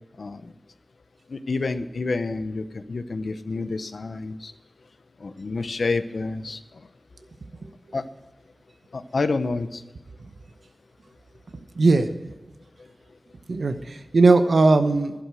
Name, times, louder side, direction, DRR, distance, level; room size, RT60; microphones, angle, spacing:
voice 1, 0.2-0.5 1.3-4.5 5.2-6.6 7.9-8.0 8.9-9.8, left 3 dB, 85° left, 11 dB, 0.8 m, -28 dB
voice 2, 11.8-12.1 13.5-15.1, right 3 dB, 85° right, 8 dB, 1.0 m, -19 dB
11.5 x 11.5 x 6.3 m, 1.1 s
wide cardioid pair, 75°, 0 cm